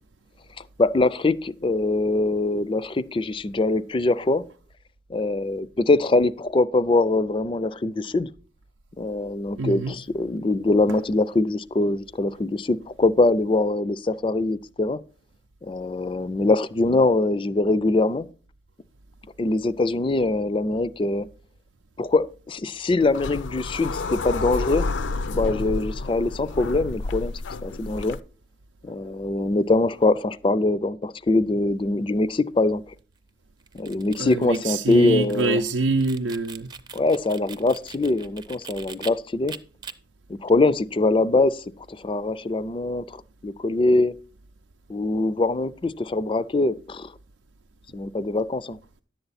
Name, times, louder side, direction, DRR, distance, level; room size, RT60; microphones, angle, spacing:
voice 1, 0.8-4.4 5.1-8.3 9.0-15.0 15.6-18.3 19.4-21.3 22.0-24.9 25.2-27.3 27.6-28.2 28.8-32.8 33.7-35.6 36.9-39.6 40.3-44.1 44.9-47.1 47.9-48.8, left 2 dB, 25° left, 0.4 m, -23 dB
voice 2, 9.6-10.0 34.2-36.7, right 3 dB, 90° right, 0.6 m, -25 dB
sound 1, 23.0-28.2, left 3 dB, 80° left, 0.5 m, -30 dB
sound 2, 33.6-39.1 39.5-39.9, right 5 dB, 20° right, 0.5 m, -42 dB
11.0 x 7.9 x 4.1 m
head